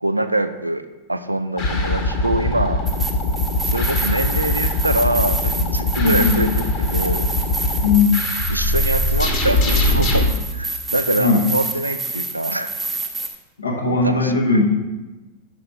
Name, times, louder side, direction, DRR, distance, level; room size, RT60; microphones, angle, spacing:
voice 1, 0.0-2.8 3.7-7.3 7.6-7.8 8.5-12.7 13.8-14.6, right 1 dB, 85° right, 10 dB, 0.3 m, -24 dB
sound 1, 1.6-10.3, left 2 dB, 40° left, 1.0 m, -21 dB
sound 2, 2.9-13.3, right 3 dB, 10° right, 0.6 m, -28 dB
voice 2, 6.0-6.4 7.8-8.3 11.2-11.4 13.6-14.6, left 4 dB, 75° left, 1 dB, 0.7 m, -18 dB
6.0 x 4.6 x 4.2 m, 1.1 s
figure-of-eight pair, 90°, 0 cm